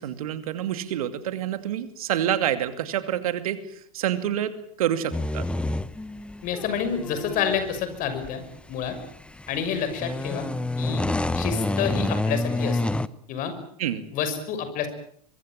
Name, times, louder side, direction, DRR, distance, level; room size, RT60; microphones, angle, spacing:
voice 1, 0.0-5.5 13.8-14.0, right 10 dB, 70° right, 11 dB, 2.5 m, -27 dB
sound 1, 5.1-13.1, left 2 dB, 5° left, 0.9 m, -28 dB
voice 2, 6.4-8.4 8.7-9.0 9.5-10.5 10.8-11.0 11.3-12.8 13.3-13.5 14.1-14.9, left 7 dB, 45° left, 10 dB, 6.2 m, -28 dB
24.5 x 23.0 x 7.6 m, 0.64 s
hypercardioid pair, 85°, 19 cm